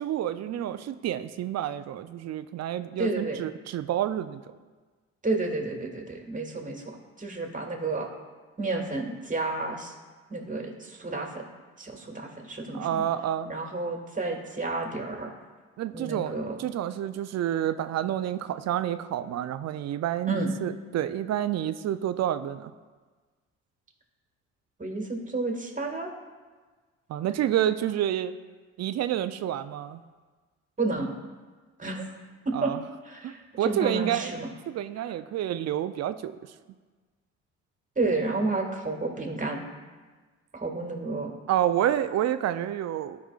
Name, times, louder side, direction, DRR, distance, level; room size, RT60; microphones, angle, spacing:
voice 1, 0.0-4.4 12.7-13.5 15.8-22.7 27.1-28.3 28.8-30.0 32.5-32.8 33.2-34.4 34.7-36.3 41.5-43.2, right 11 dB, 50° right, 12 dB, 0.5 m, -29 dB
voice 2, 3.0-3.4 5.2-6.8 7.2-8.1 8.6-9.9 10.3-11.4 11.8-13.1 13.4-15.3 15.9-16.6 20.3-20.5 24.8-26.1 30.8-31.1 31.8-32.1 32.5-32.7 33.0-34.5 38.0-39.6 40.5-41.3, right 3 dB, 20° right, 1 dB, 1.8 m, -31 dB
13.5 x 4.9 x 2.4 m, 1.4 s
hypercardioid pair, 50°, 35 cm